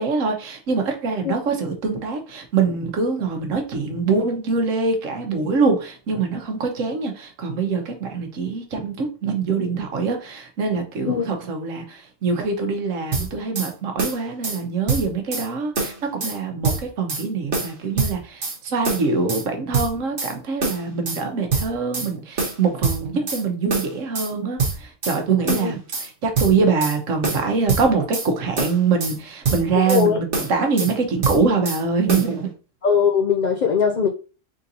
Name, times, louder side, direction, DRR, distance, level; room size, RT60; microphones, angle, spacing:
voice 1, 0.0-32.5, right 4 dB, 85° right, 1.3 m, -24 dB
sound 1, 13.1-13.7 14.0-14.6 14.9-15.5 15.8-16.4 16.6-17.2 17.5-18.6 18.8-19.4 19.7-20.3 20.6-21.2 21.5-22.1 22.4-23.4 23.7-24.3 24.6-25.2 25.5-26.1 26.3-27.0 27.2-28.3 28.6-29.2 29.4-30.0 30.3-30.9 31.2-31.8 32.1-32.3, right 4 dB, 50° right, 1.1 m, -25 dB
voice 2, 29.9-30.2 32.8-34.1, left 6 dB, 65° left, 0.4 m, -20 dB
3.9 x 3.8 x 2.7 m
omnidirectional pair, 1.3 m